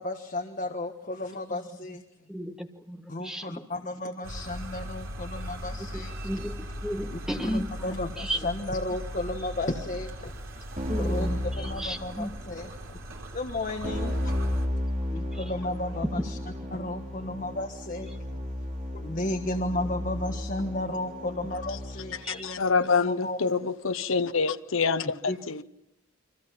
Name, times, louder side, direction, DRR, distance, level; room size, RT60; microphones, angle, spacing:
voice 1, 0.0-2.0 3.1-6.1 7.1-10.3 11.0-13.0 13.3-14.3 15.1-16.4 16.7-18.7 18.9-23.4 25.2-25.4, left 2 dB, 40° left, 1.4 m, -34 dB
voice 2, 2.3-3.6 6.2-7.7 8.2-8.4 10.9-11.4 11.8-12.3 22.2-22.4, equal, 5° right, 1.6 m, -33 dB
sound 1, 4.2-14.7, equal, 70° right, 3.4 m, -39 dB
Keyboard (musical), 10.8-12.4 13.8-22.2, left 1 dB, 40° right, 4.4 m, -33 dB
voice 3, 22.2-25.6, left 5 dB, 75° left, 0.9 m, -26 dB
29.5 x 25.0 x 5.8 m
head